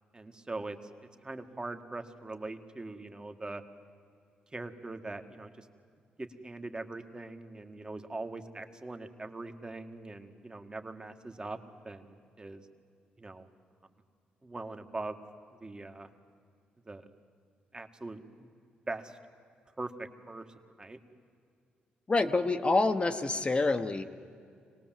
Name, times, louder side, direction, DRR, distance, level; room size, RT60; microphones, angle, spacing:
voice 1, 0.1-0.8 1.2-3.6 4.5-5.7 6.2-11.6 11.8-12.6 13.2-13.5 14.4-15.2 15.6-16.1 16.8-17.1 17.7-18.2 18.9-19.2 19.8-20.5 20.8-21.0, right 2 dB, 25° right, 6 dB, 1.7 m, -41 dB
voice 2, 22.1-24.0, left 3 dB, 30° left, 7 dB, 1.1 m, -27 dB
25.0 x 18.5 x 7.6 m, 2.3 s
cardioid pair, 70°, 4 cm